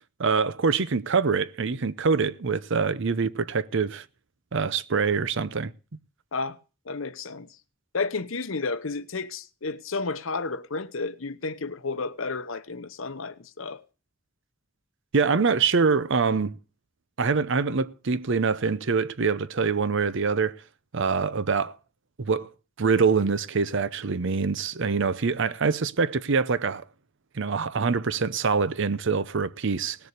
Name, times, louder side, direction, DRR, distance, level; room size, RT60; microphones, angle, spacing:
voice 1, 0.2-4.0 4.5-5.7 15.1-16.6 17.2-20.6 20.9-21.7 22.2-22.5 22.8-26.8 27.3-30.0, right 5 dB, 65° right, 0.7 m, -24 dB
voice 2, 6.9-7.5 7.9-13.8, left 3 dB, 70° left, 0.9 m, -32 dB
18.5 x 6.9 x 6.6 m
head